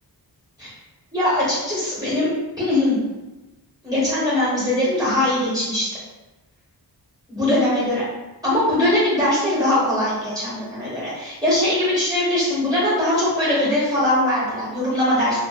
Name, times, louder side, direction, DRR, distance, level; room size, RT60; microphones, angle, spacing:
voice 1, 1.1-2.3 2.6-3.0 3.8-5.9 7.3-8.0 8.4-15.4, left 1 dB, 10° right, -10 dB, 1.0 m, -21 dB
2.4 x 2.4 x 2.3 m, 1.1 s
wide cardioid pair, 110°, 41 cm